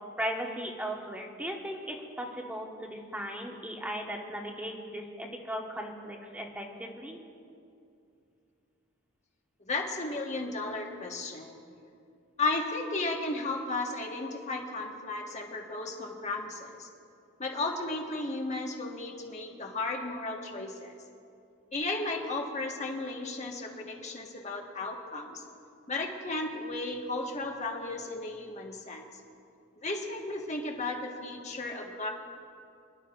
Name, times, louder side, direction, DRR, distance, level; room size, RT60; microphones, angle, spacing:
voice 1, 0.2-7.2, equal, 5° right, 0 dB, 1.2 m, -37 dB
voice 2, 9.6-11.6 12.4-16.9 17.4-21.0 21.7-25.4 25.9-29.1 29.8-32.1, left 2 dB, 35° left, 1 dB, 1.4 m, -34 dB
26.0 x 12.0 x 2.5 m, 2.5 s
head